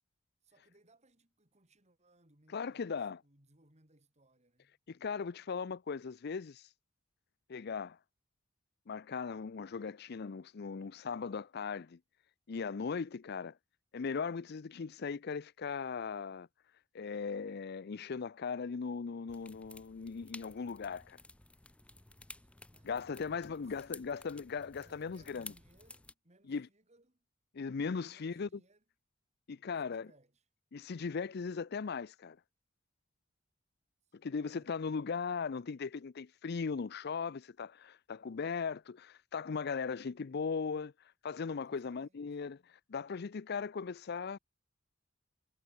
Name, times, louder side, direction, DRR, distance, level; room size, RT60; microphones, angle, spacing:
voice 1, 0.4-4.8 21.8-23.8 24.8-27.3 28.0-28.8 29.8-30.4 34.0-34.8 41.6-42.4, right 1 dB, 35° right, 4.7 m, -68 dB
voice 2, 2.5-3.2 4.9-6.7 7.5-8.0 8.9-12.0 12.5-13.6 13.9-16.5 16.9-21.2 22.8-25.5 26.5-26.7 27.5-28.5 29.5-30.1 30.7-32.4 34.2-40.9 41.2-44.4, left 5 dB, 55° left, 0.5 m, -38 dB
sound 1, 19.3-26.1, left 2 dB, 5° left, 0.5 m, -53 dB
head